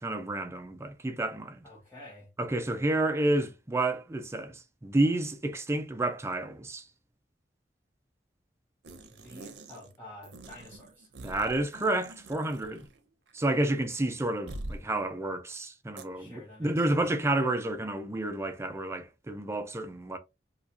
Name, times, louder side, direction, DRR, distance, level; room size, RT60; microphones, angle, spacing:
voice 1, 0.0-1.6 2.4-6.8 11.2-12.9 13.3-20.2, right 2 dB, 15° right, 0.4 m, -30 dB
voice 2, 1.6-2.3 9.1-11.1 16.1-17.1, left 1 dB, 15° left, 0.9 m, -49 dB
sound 1, 8.8-10.0 10.2-13.0 13.3-13.4 14.5-14.9 16.0-16.1, right 1 dB, 85° right, 0.7 m, -45 dB
3.8 x 2.4 x 2.7 m
head